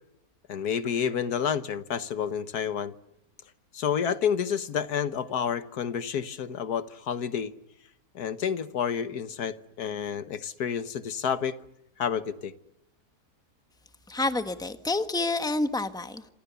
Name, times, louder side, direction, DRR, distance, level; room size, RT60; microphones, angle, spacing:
voice 1, 0.5-2.9 3.7-7.5 8.2-11.6 12.0-12.5, left 7 dB, 80° left, 1.7 m, -29 dB
voice 2, 14.1-16.3, left 2 dB, 5° left, 1.1 m, -28 dB
28.0 x 26.5 x 6.9 m
omnidirectional pair, 1.6 m